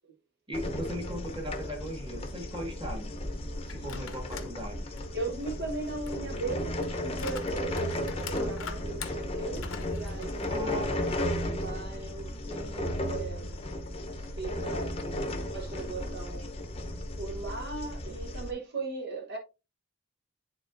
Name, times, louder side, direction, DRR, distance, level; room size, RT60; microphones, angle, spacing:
sound 1, 0.5-18.5, left 1 dB, 30° left, 0.8 m, -34 dB
voice 1, 0.5-3.1 3.7-4.9 10.5-10.9, equal, 25° right, 1.7 m, -38 dB
sound 2, 3.7-4.6 5.0-11.1 11.4-11.5 12.5-14.0, left 6 dB, 80° left, 0.9 m, -45 dB
voice 2, 5.1-10.8 11.5-13.7 14.2-15.1 15.5-16.5 17.2-19.4, right 3 dB, 55° right, 1.0 m, -38 dB
11.0 x 3.9 x 2.6 m
head